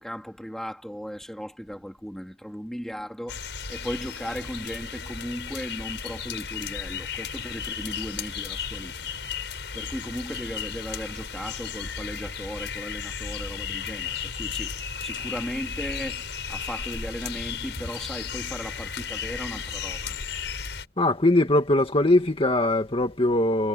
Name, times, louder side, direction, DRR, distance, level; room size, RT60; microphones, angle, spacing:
voice 1, 0.0-3.4 3.7-9.2 9.7-14.7 15.0-20.2, equal, ahead, 3.4 m, -36 dB
sound 1, 3.3-20.9, left 6 dB, 70° left, 7.5 m, -34 dB
voice 2, 21.0-23.7, left 1 dB, 30° left, 2.0 m, -21 dB
head